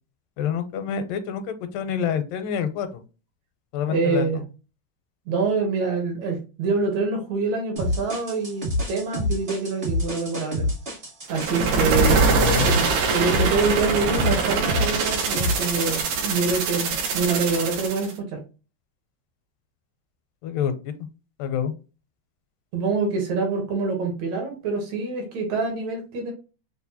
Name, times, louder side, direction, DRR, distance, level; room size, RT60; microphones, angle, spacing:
voice 1, 0.4-3.0 3.7-4.4 12.4-12.7 20.4-20.9 21.4-21.7, left 8 dB, 85° left, 9 dB, 2.3 m, -27 dB
voice 2, 3.9-4.4 5.3-10.7 11.3-12.2 12.6-18.4 22.7-26.3, right 4 dB, 70° right, 2 dB, 2.0 m, -26 dB
sound 1, 7.8-16.0, left 1 dB, 50° right, 0.6 m, -28 dB
sound 2, 11.3-18.1, right 4 dB, 90° right, 2.9 m, -23 dB
6.4 x 2.2 x 2.8 m, 0.32 s
omnidirectional pair, 3.9 m